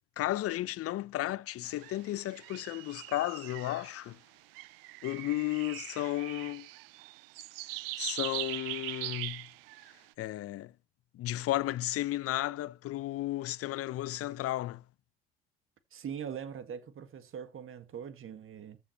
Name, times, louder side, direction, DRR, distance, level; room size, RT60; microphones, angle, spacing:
voice 1, 0.2-4.2 5.0-6.7 8.0-9.5 10.2-10.7 11.1-14.8, left 15 dB, 50° left, 0.7 m, -34 dB
sound 1, 1.7-4.0 4.5-10.0, right 20 dB, 75° right, 0.6 m, -41 dB
voice 2, 15.9-18.8, right 8 dB, 45° right, 1.9 m, -42 dB
14.5 x 7.3 x 3.1 m
hypercardioid pair, 60°, 29 cm